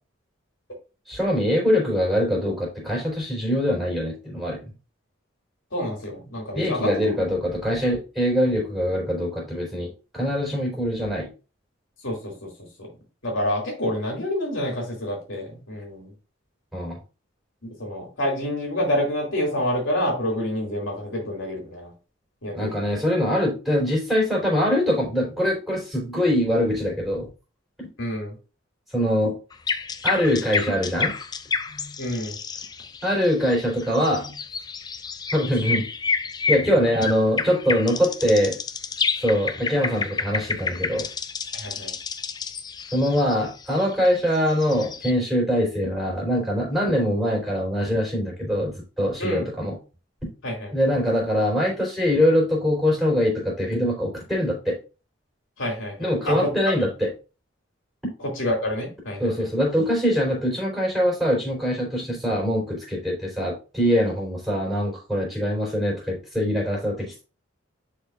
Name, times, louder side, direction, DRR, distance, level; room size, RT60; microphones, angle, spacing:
voice 1, 1.1-4.7 6.5-11.3 16.7-17.0 22.5-27.3 28.9-29.3 30.0-31.1 33.0-34.3 35.3-35.9 36.5-38.6 39.2-41.1 42.9-49.7 50.7-54.8 56.0-57.1 59.2-67.2, equal, ahead, -3 dB, 3.7 m, -23 dB
voice 2, 5.7-7.1 12.0-12.9 13.2-16.1 17.6-21.9 22.4-22.9 28.0-28.4 32.0-32.4 41.5-41.9 49.2-49.7 50.4-50.7 55.6-56.9 58.2-59.5, left 1 dB, 70° left, 0 dB, 2.6 m, -28 dB
sound 1, 29.5-45.1, left 5 dB, 20° left, 0.3 m, -30 dB
10.5 x 4.4 x 2.5 m, 0.33 s
head